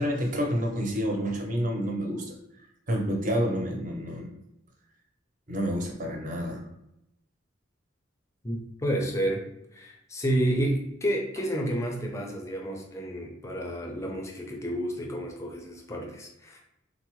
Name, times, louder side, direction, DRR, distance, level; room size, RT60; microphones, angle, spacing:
voice 1, 0.0-2.4 2.9-4.3 5.5-6.6, equal, 40° right, 0 dB, 0.6 m, -29 dB
voice 2, 8.4-9.4 9.7-16.6, right 1 dB, 15° left, 0 dB, 0.4 m, -30 dB
3.5 x 2.0 x 3.0 m, 0.81 s
head